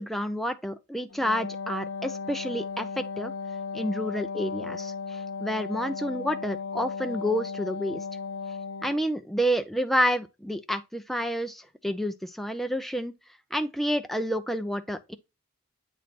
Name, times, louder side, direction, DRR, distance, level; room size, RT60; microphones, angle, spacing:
voice 1, 0.0-3.3 3.7-8.0 8.8-13.1 13.5-15.2, equal, ahead, 0.4 m, -29 dB
Wind instrument woodwind instrument, 1.1-9.1, left 5 dB, 65° left, 0.6 m, -35 dB
8.1 x 3.2 x 4.1 m
head